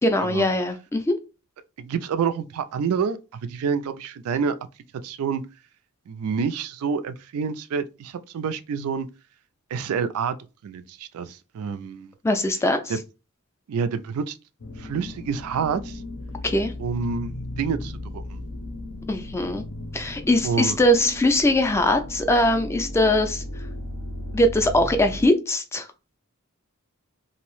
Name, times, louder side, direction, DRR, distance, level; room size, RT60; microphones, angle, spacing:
voice 1, 0.0-1.2 12.2-12.9 16.4-16.7 19.1-19.6 19.9-23.4 24.3-25.9, left 1 dB, 10° left, 0.3 m, -21 dB
voice 2, 1.8-4.6 5.0-5.4 6.1-9.1 9.7-10.4 10.6-12.1 12.9-13.0 13.7-14.4 14.8-16.0 16.8-18.4 20.4-20.8, right 6 dB, 85° right, 0.3 m, -28 dB
sound 1, 14.6-25.3, left 1 dB, 75° left, 0.6 m, -36 dB
2.6 x 2.0 x 2.9 m
head